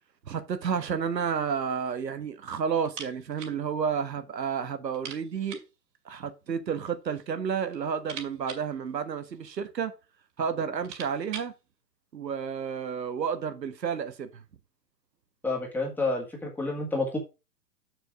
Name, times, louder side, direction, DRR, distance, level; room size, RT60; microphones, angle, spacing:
voice 1, 0.2-5.6 6.0-9.9 10.4-11.5 12.1-14.4, right 7 dB, 80° right, 1.5 m, -31 dB
sound 1, 2.8-3.6 3.9-4.0 4.3-4.4 4.9-5.8 6.7-7.3 7.6-9.6 10.3-10.4 10.7-11.6, right 6 dB, 45° right, 2.3 m, -44 dB
voice 2, 15.4-17.2, left 2 dB, 5° left, 1.9 m, -29 dB
6.6 x 6.5 x 4.8 m
hypercardioid pair, 145°, 49 cm